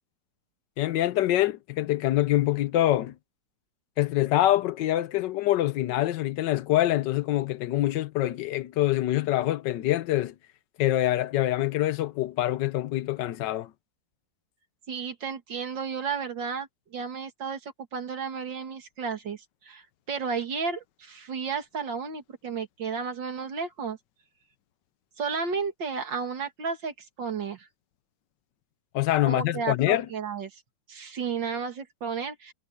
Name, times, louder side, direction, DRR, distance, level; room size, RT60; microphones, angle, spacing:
voice 1, 0.8-3.1 4.0-10.3 10.8-13.7 28.9-30.1, left 14 dB, 80° left, 1.3 m, -25 dB
voice 2, 14.9-24.0 25.2-27.7 29.3-30.6 30.9-32.5, right 5 dB, 85° right, 2.8 m, -33 dB
omnidirectional pair, 2.0 m